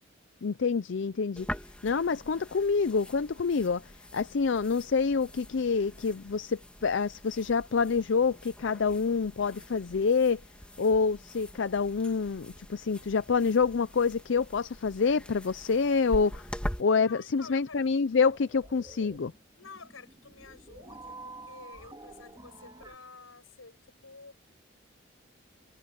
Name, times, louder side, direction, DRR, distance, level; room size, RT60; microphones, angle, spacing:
voice 1, 0.4-1.5 1.8-3.8 4.1-10.4 10.8-16.4 16.8-19.3, left 5 dB, 60° left, 0.5 m, -27 dB
sound 1, 1.4-16.8, equal, 5° left, 2.4 m, -44 dB
voice 2, 17.1-18.0 19.6-23.8 24.0-24.4, left 4 dB, 85° left, 5.4 m, -50 dB
sound 2, 18.1-23.0, right 2 dB, 20° right, 2.6 m, -49 dB
head